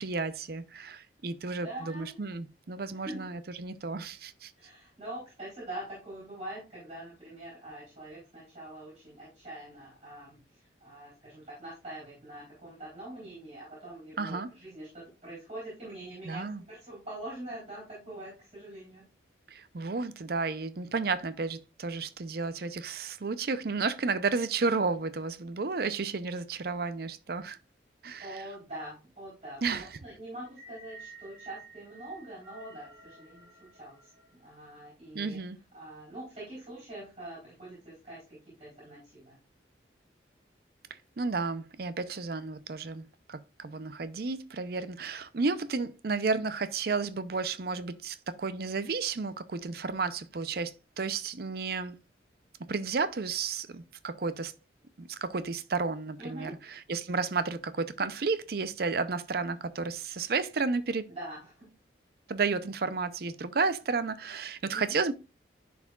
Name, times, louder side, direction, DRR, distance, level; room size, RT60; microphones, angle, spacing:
voice 1, 0.0-4.5 14.2-14.5 16.2-16.6 19.5-27.6 28.0-28.4 29.6-30.0 35.1-35.6 41.2-51.9 52.7-54.5 55.0-61.1 62.3-65.1, right 4 dB, 55° right, 0.6 m, -32 dB
voice 2, 1.6-2.2 2.9-3.3 4.6-19.1 28.2-35.4 35.7-39.3 56.2-56.6 61.2-61.7 64.7-65.0, right 1 dB, 35° right, 3.9 m, -44 dB
sound 1, 30.4-34.8, right 3 dB, 70° right, 2.6 m, -52 dB
10.5 x 4.8 x 2.3 m
head